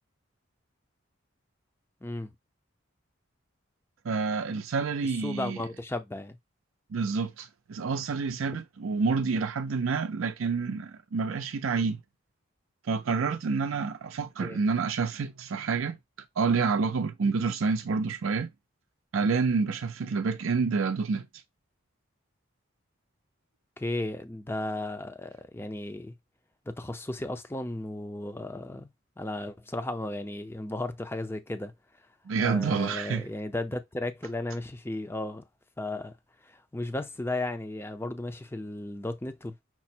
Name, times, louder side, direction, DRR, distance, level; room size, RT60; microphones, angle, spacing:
voice 1, 2.0-2.3 5.2-6.4 14.4-14.6 23.8-26.1 26.7-28.9 29.2-31.7 32.4-35.4 35.8-36.1 36.4-39.6, left 2 dB, 10° left, 0.5 m, -35 dB
voice 2, 4.0-5.6 6.9-12.0 12.9-16.0 16.4-18.5 19.1-21.3 32.3-33.3, right 4 dB, 75° right, 0.5 m, -28 dB
5.9 x 2.1 x 4.3 m
head